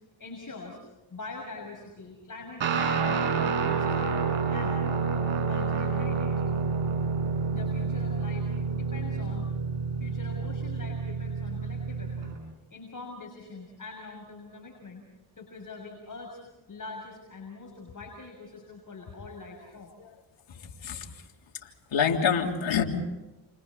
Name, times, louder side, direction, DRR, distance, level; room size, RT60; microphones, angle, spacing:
voice 1, 0.2-0.8 1.1-4.8 5.5-6.4 7.5-9.5 10.0-12.3 12.7-15.0 15.4-16.4 16.7-19.9, left 3 dB, 40° left, 0 dB, 6.5 m, -44 dB
Guitar, 2.6-12.3, right 5 dB, 65° right, 5.9 m, -28 dB
voice 2, 20.6-21.1 21.9-22.8, left 7 dB, 70° left, 1 dB, 3.6 m, -26 dB
29.5 x 29.0 x 4.2 m, 1.1 s
supercardioid pair, 50°, 48 cm